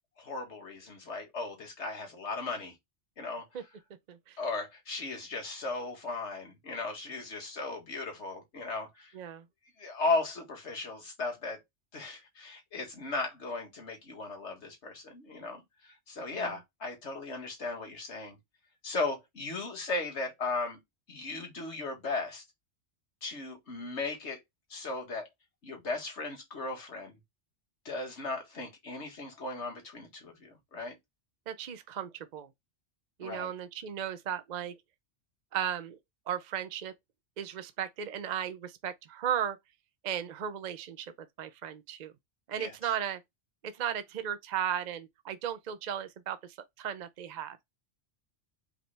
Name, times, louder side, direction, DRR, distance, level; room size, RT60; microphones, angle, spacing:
voice 1, 0.2-2.7 3.2-3.4 4.4-9.1 9.8-11.6 11.9-18.4 18.8-20.8 21.1-22.4 23.2-24.4 24.7-25.3 25.6-27.2 27.9-31.0 33.2-33.5 42.6-42.8, left 3 dB, 80° left, 1.9 m, -36 dB
voice 2, 9.1-9.4 16.3-16.5 31.5-32.5 33.2-34.7 35.5-36.0 36.3-36.9 37.4-39.6 40.0-41.1 41.4-42.1 42.5-43.2 43.6-47.6, right 9 dB, 50° right, 0.5 m, -35 dB
4.9 x 3.2 x 3.3 m
omnidirectional pair, 1.1 m